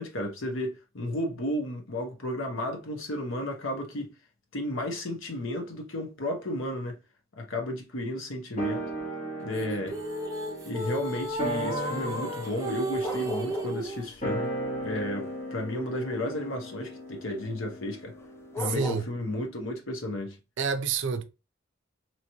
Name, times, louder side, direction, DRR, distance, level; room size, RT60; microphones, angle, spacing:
voice 1, 0.0-4.1 4.5-7.0 7.4-8.8 9.4-10.0 10.7-14.5 14.8-18.1 18.6-20.4, left 1 dB, 70° left, 0.9 m, -33 dB
sound 1, 8.6-19.2 19.4-19.5, right 1 dB, 35° left, 1.0 m, -36 dB
sound 2, 9.5-14.1, right 2 dB, 15° right, 0.7 m, -34 dB
sound 3, 12.6-13.9 14.2-16.6 18.2-18.3 18.5-19.0, left 3 dB, 15° left, 0.3 m, -38 dB
voice 2, 18.6-19.1 20.6-21.2, right 5 dB, 60° right, 0.4 m, -28 dB
2.9 x 2.9 x 2.7 m
head